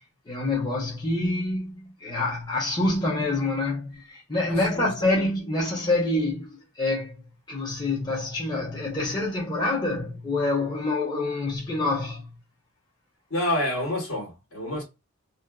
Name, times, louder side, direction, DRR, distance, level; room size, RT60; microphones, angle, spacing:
voice 1, 0.3-7.2 7.5-12.3, left 2 dB, 20° left, 0.7 m, -26 dB
voice 2, 4.5-4.9 13.3-14.8, left 1 dB, 70° left, 1.4 m, -28 dB
2.5 x 2.3 x 2.3 m
head